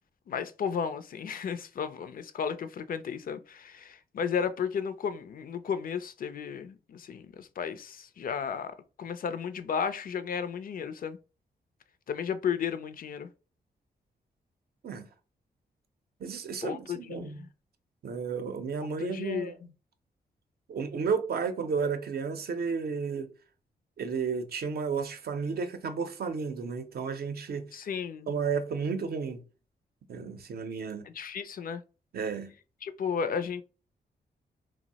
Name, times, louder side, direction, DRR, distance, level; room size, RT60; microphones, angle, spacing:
voice 1, 0.3-11.2 12.1-13.3 16.6-17.5 19.0-19.5 27.7-28.3 31.0-31.8 32.8-33.6, left 7 dB, 55° left, 0.4 m, -34 dB
voice 2, 16.2-17.4 18.0-19.5 20.7-23.3 24.0-27.7 28.3-29.4 30.1-31.1 32.1-32.5, right 5 dB, 65° right, 0.5 m, -32 dB
2.6 x 2.0 x 3.9 m
cardioid pair, 90°, 17 cm